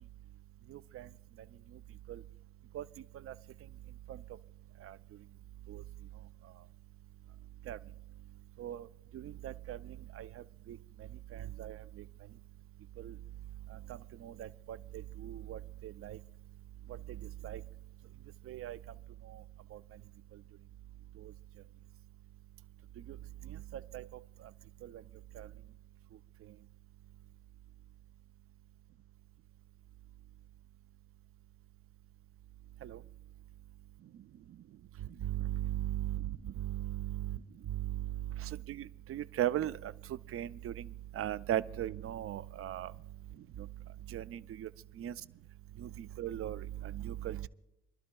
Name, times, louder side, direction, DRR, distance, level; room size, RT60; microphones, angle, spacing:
voice 1, 0.7-1.1 2.1-2.2 2.7-2.8 3.3-3.4 4.1-4.2 4.8-5.0 5.7-5.8 7.7-7.8 8.6-8.9 9.1-12.0 13.0-13.2 13.7-16.2 17.1-17.6 18.5-18.8 19.3-19.4 19.7-19.8 21.2-21.3 23.1-23.2 23.5-24.1 24.8-25.0 25.4-25.5 32.8-33.0 35.2-37.4 37.7-39.9 40.3-40.8 41.1-42.9 43.6-43.7 44.1-44.7 45.0-45.1 45.8-47.5, right 12 dB, 50° right, 0.4 m, -39 dB
29.0 x 12.0 x 2.3 m
cardioid pair, 90°, 30 cm